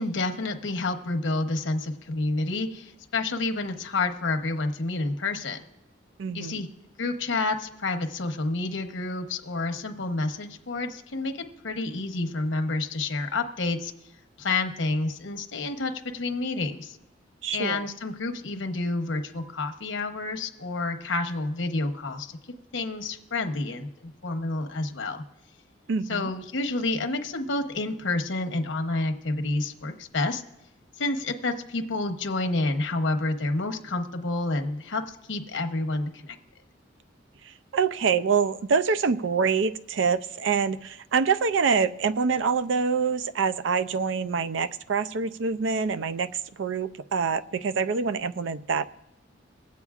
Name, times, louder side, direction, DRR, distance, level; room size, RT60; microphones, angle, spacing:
voice 1, 0.0-5.6 6.3-6.7 7.0-13.9 14.4-17.0 17.5-22.3 22.7-25.2 26.1-30.4 31.0-36.4, left 2 dB, 90° left, 6 dB, 0.9 m, -29 dB
voice 2, 6.2-6.6 17.4-17.9 25.9-26.3 37.7-46.3 46.6-48.9, right 5 dB, 85° right, 14 dB, 0.4 m, -25 dB
23.5 x 8.4 x 2.4 m, 0.89 s
head